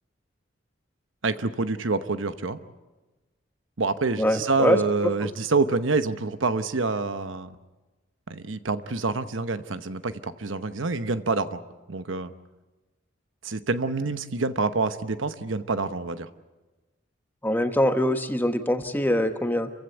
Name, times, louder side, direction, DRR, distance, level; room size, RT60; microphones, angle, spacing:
voice 1, 1.2-2.6 3.8-7.6 8.3-11.6 11.9-12.3 13.4-16.3, right 3 dB, 75° right, 11 dB, 1.0 m, -27 dB
voice 2, 4.2-4.8 5.2-5.3 17.4-19.7, left 1 dB, 10° left, 7 dB, 1.1 m, -23 dB
28.0 x 16.0 x 8.3 m, 1.2 s
head